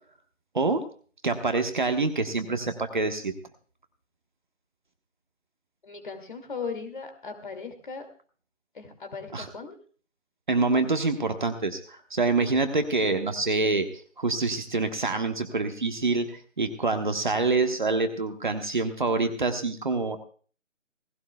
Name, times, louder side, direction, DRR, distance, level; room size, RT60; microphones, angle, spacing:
voice 1, 1.2-3.3 9.3-9.5 10.5-13.9 14.2-16.3 16.6-20.2, right 3 dB, 35° right, 6 dB, 1.3 m, -26 dB
voice 2, 5.8-8.1 8.7-9.8, left 5 dB, 40° left, 6 dB, 2.4 m, -37 dB
18.5 x 16.0 x 2.3 m, 0.42 s
figure-of-eight pair, 165°, 39 cm